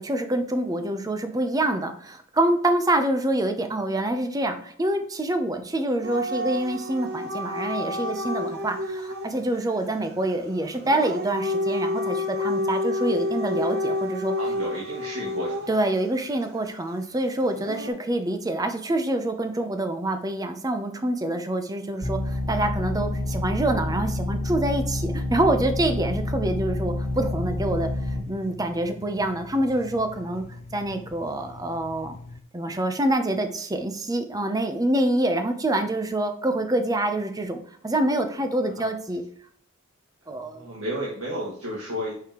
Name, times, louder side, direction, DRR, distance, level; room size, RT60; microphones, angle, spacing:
voice 1, 0.0-14.3 15.7-27.9 28.3-30.4 30.7-32.2 32.5-39.2 40.3-40.7, right 1 dB, 15° right, 7 dB, 0.6 m, -26 dB
Dog / Siren, 6.0-9.3 10.8-15.9 17.5-17.9, left 1 dB, 50° right, 0.9 m, -29 dB
voice 2, 14.4-15.7 40.3-42.1, equal, 90° right, -5 dB, 1.9 m, -32 dB
sound 1, 22.0-28.2, left 2 dB, 50° left, 1.9 m, -28 dB
sound 2, 27.0-32.4, left 2 dB, 30° left, 0.3 m, -44 dB
6.6 x 5.4 x 3.0 m, 0.62 s
head